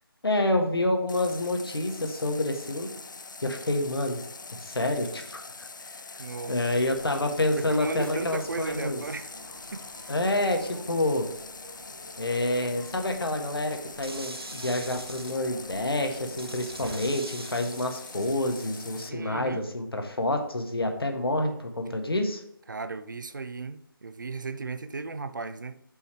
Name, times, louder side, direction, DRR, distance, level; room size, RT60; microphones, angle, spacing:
voice 1, 0.2-2.9 3.4-4.2 4.5-5.9 6.5-9.0 10.1-11.3 12.2-22.4, left 1 dB, 80° left, 1.4 m, -28 dB
Water tap faucet, 1.1-19.1, left 4 dB, 55° left, 0.5 m, -43 dB
voice 2, 6.2-6.7 7.6-9.3 9.7-9.9 19.1-19.7 22.7-25.8, right 3 dB, 55° right, 0.6 m, -35 dB
Mechanisms, 6.4-17.5, equal, 10° right, 0.8 m, -50 dB
sound 1, 11.1-11.4 13.7-15.4 16.4-19.0, right 3 dB, 90° right, 0.8 m, -44 dB
5.5 x 4.9 x 4.4 m
figure-of-eight pair, 165°, 12 cm